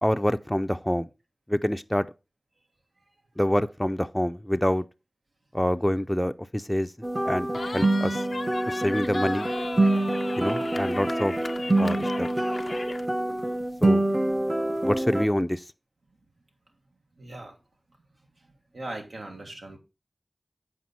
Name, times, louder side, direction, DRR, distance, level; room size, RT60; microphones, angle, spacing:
voice 1, 0.0-1.1 1.5-2.0 3.4-4.8 5.5-6.9 7.3-8.2 8.7-9.5 10.4-11.3 11.8-12.3 13.8-14.0 14.8-15.6, left 1 dB, 10° left, 0.4 m, -26 dB
sound 1, 7.0-15.2, right 1 dB, 25° right, 0.7 m, -26 dB
Cheering, 7.5-13.1, left 3 dB, 75° left, 0.4 m, -37 dB
voice 2, 17.2-17.5 18.4-19.8, right 2 dB, 90° right, 1.7 m, -40 dB
7.6 x 5.1 x 4.1 m
wide cardioid pair, 50°, 0 cm